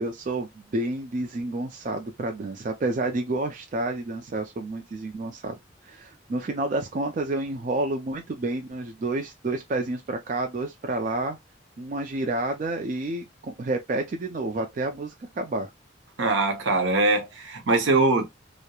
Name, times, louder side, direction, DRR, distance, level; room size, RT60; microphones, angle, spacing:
voice 1, 0.0-5.6 5.8-11.4 11.8-15.7, right 2 dB, 40° right, 0.3 m, -29 dB
voice 2, 16.2-18.2, right 3 dB, 75° right, 0.6 m, -22 dB
2.9 x 2.0 x 2.2 m
head